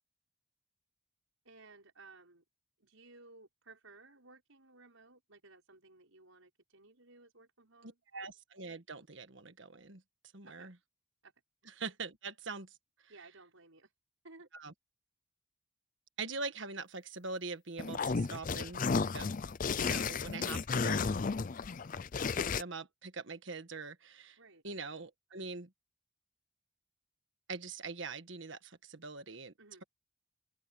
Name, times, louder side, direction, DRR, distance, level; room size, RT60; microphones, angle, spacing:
voice 1, 1.4-2.4 2.8-8.0 10.4-10.7 11.2-11.3 13.1-13.9 14.2-14.5 18.1-18.3 24.4-24.6 29.6-29.9, right 3 dB, 80° right, 5.8 m, -58 dB
voice 2, 7.8-10.0 10.3-10.7 11.8-12.7 13.0-13.1 14.5-14.7 16.2-18.8 19.1-19.3 19.7-21.1 22.3-24.4 24.6-25.7 27.5-29.5, right 4 dB, 65° right, 1.5 m, -43 dB
sound 1, 17.8-22.6, left 5 dB, 40° left, 0.5 m, -33 dB
open air
head